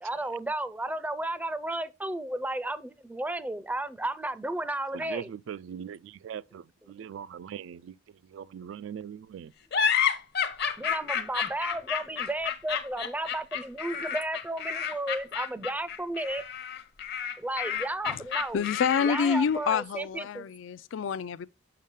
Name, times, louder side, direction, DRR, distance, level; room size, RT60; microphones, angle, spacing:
voice 1, 0.0-5.3 10.8-16.4 17.4-18.6 19.0-20.5, right 1 dB, 10° right, 0.4 m, -33 dB
voice 2, 4.9-8.0 8.2-9.5, right 8 dB, 85° right, 0.3 m, -41 dB
sound 1, 9.7-19.5, left 8 dB, 60° left, 0.8 m, -30 dB
voice 3, 18.5-21.5, left 6 dB, 85° left, 0.4 m, -28 dB
6.4 x 5.6 x 3.6 m
head